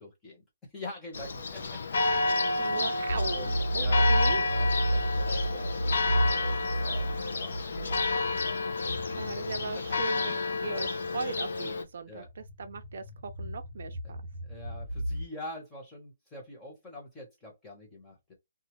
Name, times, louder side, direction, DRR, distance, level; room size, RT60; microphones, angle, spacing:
voice 1, 0.0-2.2 2.6-2.9 3.3-7.7 9.0-9.3 9.7-10.0 12.1-12.3 14.0-14.1 14.4-18.3, left 1 dB, 10° left, 1.0 m, -45 dB
Church bell, 1.1-11.8, left 3 dB, 60° left, 0.6 m, -30 dB
voice 2, 2.6-3.4 3.7-4.4 9.2-14.2, right 5 dB, 55° right, 0.5 m, -38 dB
sound 1, 3.1-10.2 10.8-11.1 12.2-15.2, right 1 dB, 80° left, 1.1 m, -31 dB
2.4 x 2.4 x 3.0 m
hypercardioid pair, 170°, 0 cm